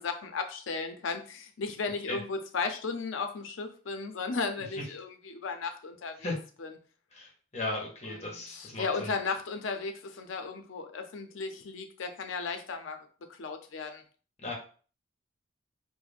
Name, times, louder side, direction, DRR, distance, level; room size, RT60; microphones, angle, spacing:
voice 1, 0.0-6.3 6.6-6.7 8.1-13.0 13.3-14.0, left 4 dB, 85° left, 6 dB, 0.5 m, -35 dB
voice 2, 7.1-9.1 14.4-14.5, left 2 dB, 35° left, -1 dB, 0.8 m, -36 dB
2.4 x 2.1 x 3.3 m, 0.40 s
head